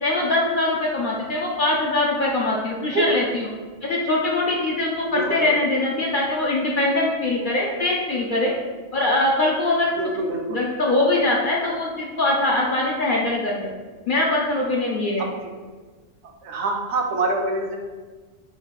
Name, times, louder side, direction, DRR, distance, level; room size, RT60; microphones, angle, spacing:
voice 1, 0.0-3.5 3.8-8.5 8.9-13.7 14.1-15.3, left 2 dB, 55° left, -3 dB, 0.6 m, -22 dB
voice 2, 5.1-5.5 10.0-10.6 15.2-15.3 16.4-17.8, right 2 dB, 70° right, 2 dB, 0.9 m, -25 dB
4.0 x 2.4 x 4.6 m, 1.4 s
omnidirectional pair, 1.3 m